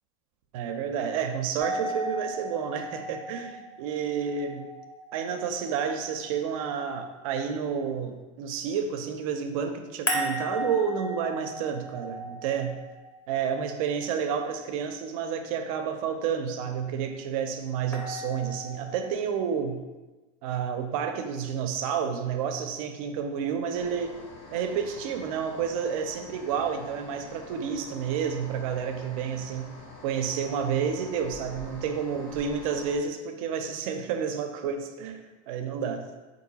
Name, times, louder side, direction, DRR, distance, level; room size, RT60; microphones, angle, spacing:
voice 1, 0.5-4.7 5.1-12.8 13.3-19.8 20.4-24.1 24.5-29.7 30.0-36.1, right 7 dB, 75° right, 6 dB, 0.4 m, -30 dB
sound 1, 1.6-6.6 10.1-14.2 17.9-19.1, equal, 15° left, 0.6 m, -36 dB
sound 2, 23.7-33.0, left 2 dB, 50° left, 0.8 m, -46 dB
3.7 x 2.6 x 2.8 m, 1.2 s
supercardioid pair, 130°, 18 cm